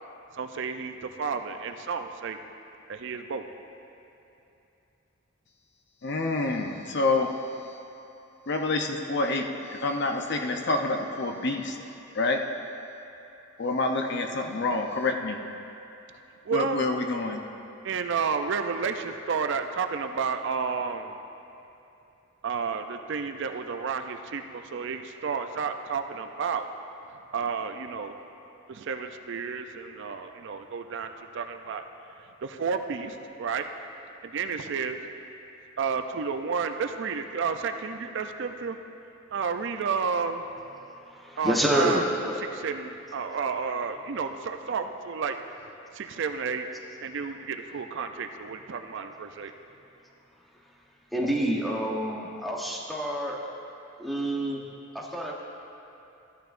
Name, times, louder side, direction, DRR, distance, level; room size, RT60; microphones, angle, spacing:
voice 1, 0.3-2.4 2.9-3.5 16.4-16.9 17.8-21.1 22.4-26.7 27.1-28.1 28.7-31.8 32.4-33.7 34.2-35.1 35.8-38.8 39.3-40.5 41.4-42.1 42.6-45.4 45.9-46.7 47.0-49.5, right 5 dB, 60° right, 7 dB, 0.4 m, -31 dB
voice 2, 6.0-7.3 8.5-11.8 12.1-12.4 13.6-15.4 16.5-17.4, left 3 dB, 55° left, 4 dB, 0.7 m, -27 dB
voice 3, 41.1-42.4 51.1-53.4 54.0-54.6 54.9-55.3, equal, ahead, -3 dB, 0.9 m, -28 dB
14.0 x 10.5 x 2.5 m, 2.9 s
head